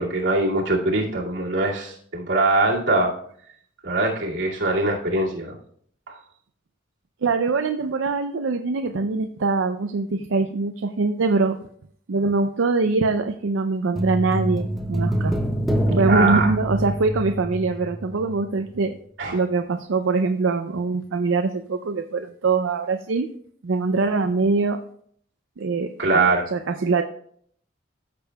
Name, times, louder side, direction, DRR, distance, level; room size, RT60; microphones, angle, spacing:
voice 1, 0.0-3.1 3.8-5.5 6.1-6.2 16.1-16.5 19.2-19.4 26.0-26.4, right 2 dB, 70° right, -4 dB, 2.2 m, -22 dB
voice 2, 7.2-11.6 12.1-15.4 15.9-18.9 19.3-23.3 23.6-24.8 25.6-27.0, right 3 dB, 90° right, 7 dB, 0.5 m, -23 dB
sound 1, 14.0-18.4 18.7-18.8, right 1 dB, ahead, 0.7 m, -25 dB
14.0 x 6.8 x 2.3 m, 0.62 s
head